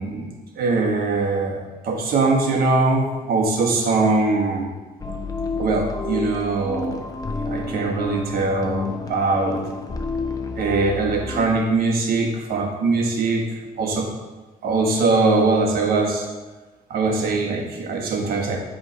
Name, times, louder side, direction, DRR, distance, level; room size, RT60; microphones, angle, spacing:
voice 1, 0.0-4.7 5.6-7.0 7.4-9.6 10.6-13.4 13.8-14.1 14.6-16.3 16.9-18.6, right 3 dB, 65° right, 0 dB, 1.6 m, -22 dB
sound 1, 5.0-11.5, left 3 dB, 20° left, 0.7 m, -29 dB
8.0 x 3.7 x 5.7 m, 1.3 s
cardioid pair, 110°, 17 cm